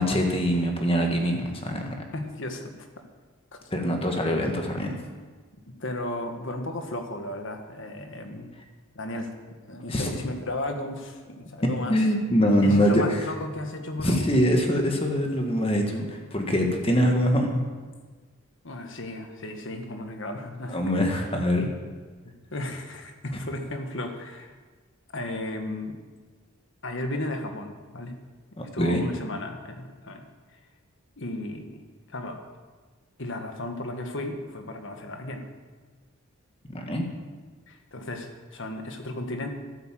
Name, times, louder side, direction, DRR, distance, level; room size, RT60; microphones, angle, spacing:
voice 1, 0.0-2.0 3.7-5.0 9.9-10.2 11.9-13.2 14.0-17.5 20.7-21.7 28.6-29.0 36.7-37.0, equal, 25° left, 2 dB, 1.7 m, -24 dB
voice 2, 2.1-3.0 3.5-3.6 5.1-5.2 5.7-8.5 8.9-9.3 9.7-12.0 12.6-14.3 18.6-20.8 22.2-24.5 25.1-26.0 26.8-28.2 28.7-30.3 31.2-31.8 32.1-32.4 33.2-35.4 37.7-39.5, left 1 dB, 60° left, 5 dB, 1.5 m, -34 dB
12.5 x 9.5 x 7.6 m, 1.4 s
head